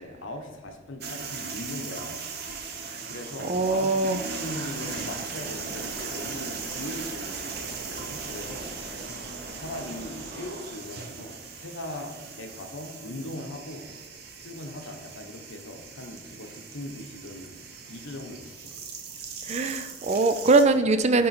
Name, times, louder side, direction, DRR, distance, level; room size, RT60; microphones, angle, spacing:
voice 1, 0.0-2.2 2.6-2.7 3.1-4.0 4.3-8.7 9.1-13.9 14.4-17.6 17.9-18.7, left 1 dB, 75° left, 4 dB, 1.0 m, -39 dB
sound 1, 1.0-20.6, right 5 dB, 50° right, 0.8 m, -38 dB
voice 2, 3.5-4.2 19.4-21.3, right 3 dB, 35° right, 10 dB, 0.4 m, -22 dB
sound 2, 4.4-10.5, right 1 dB, 85° right, 2.0 m, -43 dB
10.0 x 3.8 x 4.2 m, 1.1 s
head